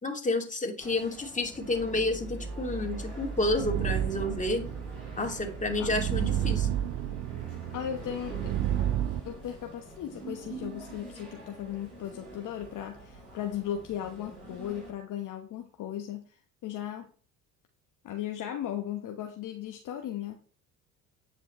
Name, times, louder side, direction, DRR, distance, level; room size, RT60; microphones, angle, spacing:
voice 1, 0.0-4.7 5.2-6.7, left 2 dB, 20° left, 2 dB, 2.5 m, -30 dB
sound 1, 0.8-14.9, right 2 dB, 90° right, 5.2 m, -43 dB
sound 2, 3.1-9.2, right 12 dB, 40° right, 0.4 m, -31 dB
voice 2, 7.7-8.4 9.2-16.2 16.6-17.1 18.0-20.4, left 10 dB, 45° left, 4 dB, 1.1 m, -36 dB
9.3 x 7.6 x 3.2 m, 0.40 s
hypercardioid pair, 55°, 41 cm